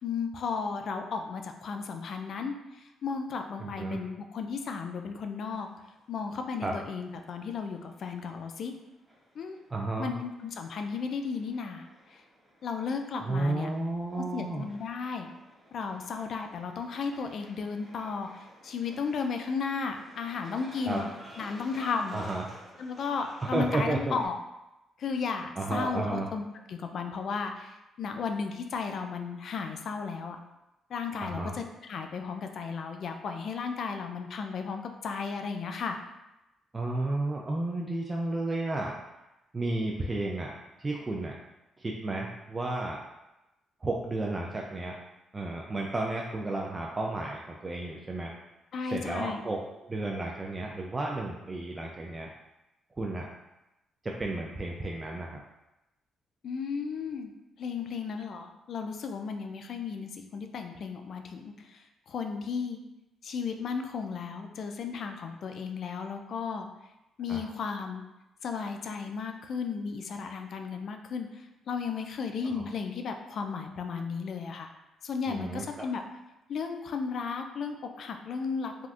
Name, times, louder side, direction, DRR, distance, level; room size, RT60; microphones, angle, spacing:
voice 1, 0.0-5.7 6.1-8.7 9.4-9.6 10.0-12.2 12.6-13.7 14.2-15.3 15.7-21.1 21.4-22.2 22.8-24.4 25.0-30.4 30.9-36.0 48.7-49.4 56.4-57.3 57.6-62.8 63.2-66.7 67.2-68.0 68.4-74.7 75.0-76.0 76.5-78.9, left 5 dB, 60° left, 5 dB, 0.3 m, -34 dB
voice 2, 3.6-4.0 6.6-6.7 9.7-10.2 13.2-14.7 20.8-21.0 22.1-22.5 23.4-24.2 25.6-26.3 31.2-31.6 36.7-38.9 39.5-40.5 40.8-41.4 41.8-43.0 43.8-45.0 45.3-48.3 48.9-52.3 53.0-53.3 54.0-55.4 67.3-67.4 72.4-72.6 75.3-75.9, right 2 dB, 25° right, -1 dB, 0.3 m, -32 dB
sound 1, 5.5-24.3, equal, 5° right, 1.2 m, -53 dB
3.4 x 2.4 x 2.3 m, 0.95 s
cardioid pair, 90°, 0 cm